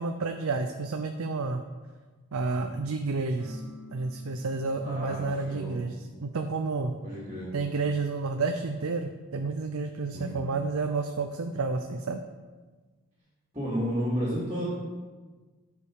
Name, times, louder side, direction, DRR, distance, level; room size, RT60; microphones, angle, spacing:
voice 1, 0.0-1.6 2.3-3.6 3.9-5.9 6.2-6.9 7.5-12.2, right 3 dB, 80° right, 6 dB, 0.5 m, -30 dB
sound 1, 3.4-13.2, left 1 dB, 85° left, 2.3 m, -54 dB
voice 2, 4.8-5.7 7.0-7.5 10.1-10.4 13.5-14.7, equal, 20° right, -10 dB, 2.6 m, -32 dB
12.5 x 5.1 x 4.8 m, 1.4 s
head